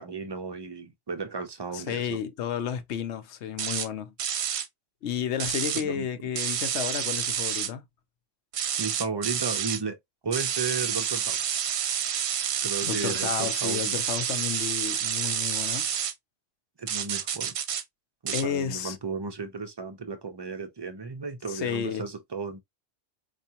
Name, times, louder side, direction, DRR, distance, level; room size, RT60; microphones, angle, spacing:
voice 1, 0.0-2.2 5.7-6.1 8.8-10.0 10.2-11.5 12.6-13.9 16.8-17.5 18.2-22.6, right 4 dB, 35° right, 0.4 m, -34 dB
voice 2, 1.7-4.1 5.0-7.8 12.8-15.8 18.3-19.0 21.5-22.1, left 8 dB, 70° left, 0.9 m, -32 dB
sound 1, 3.6-3.9 4.2-4.7 5.4-5.8 6.4-7.7 8.5-9.8 10.3-16.1 16.9-17.8 18.3-18.4, right 9 dB, 70° right, 0.9 m, -29 dB
4.6 x 2.4 x 2.8 m
omnidirectional pair, 1.2 m